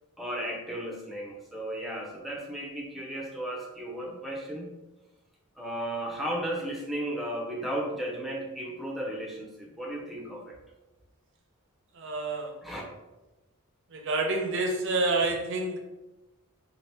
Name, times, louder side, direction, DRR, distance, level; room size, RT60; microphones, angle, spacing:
voice 1, 0.2-4.7 5.6-10.6 12.6-12.8, right 1 dB, ahead, -2 dB, 0.5 m, -35 dB
voice 2, 11.9-12.5 13.9-15.8, right 2 dB, 60° right, 2 dB, 0.6 m, -28 dB
2.7 x 2.5 x 3.3 m, 1.0 s
head